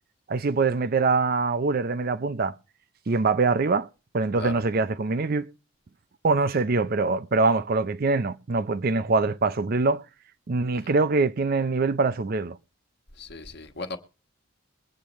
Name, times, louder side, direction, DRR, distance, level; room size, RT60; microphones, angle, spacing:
voice 1, 0.3-2.5 3.1-3.9 4.1-5.5 6.2-10.0 10.5-12.6, right 3 dB, 45° right, 0.5 m, -24 dB
voice 2, 13.2-14.0, left 2 dB, 50° left, 1.3 m, -37 dB
22.0 x 8.5 x 3.1 m
head